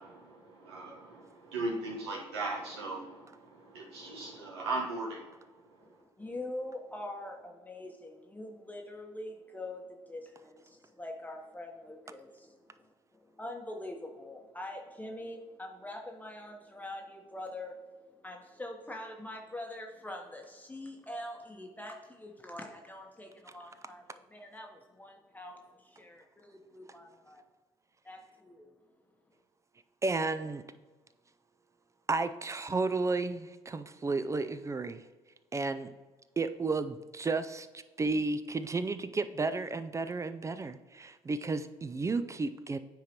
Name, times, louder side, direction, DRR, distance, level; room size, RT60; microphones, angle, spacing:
voice 1, 0.0-5.8, right 2 dB, 90° right, -2 dB, 1.2 m, -38 dB
voice 2, 5.8-27.4 28.0-28.7, left 1 dB, 10° left, 1 dB, 0.9 m, -44 dB
voice 3, 30.0-30.6 32.1-35.0 35.5-35.9 36.4-42.8, right 3 dB, 25° right, 11 dB, 0.4 m, -32 dB
9.8 x 3.8 x 2.9 m, 1.3 s
hypercardioid pair, 55°, 13 cm